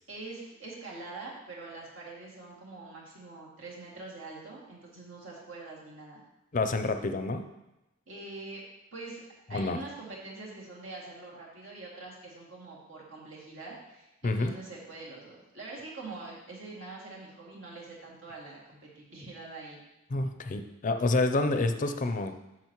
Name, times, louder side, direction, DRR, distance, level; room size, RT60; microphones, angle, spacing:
voice 1, 0.1-6.2 8.1-8.6 8.9-9.2 9.5-19.8, right 3 dB, 75° right, -4 dB, 2.3 m, -44 dB
voice 2, 6.5-7.4 9.5-9.8 14.2-14.5 20.1-22.4, left 2 dB, 40° left, 7 dB, 0.5 m, -28 dB
10.0 x 6.1 x 3.0 m, 0.96 s
head